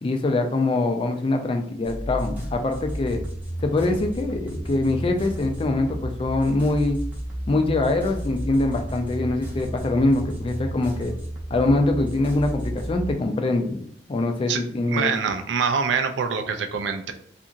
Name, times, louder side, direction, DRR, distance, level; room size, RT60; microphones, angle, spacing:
voice 1, 0.0-3.2 3.6-7.0 7.5-11.1 11.5-13.8 14.1-15.1, left 2 dB, 30° left, 5 dB, 0.3 m, -23 dB
sound 1, 1.8-13.1, right 1 dB, 10° right, 0.7 m, -33 dB
voice 2, 14.9-17.1, right 5 dB, 80° right, 6 dB, 0.4 m, -25 dB
2.8 x 2.5 x 2.5 m, 0.67 s
head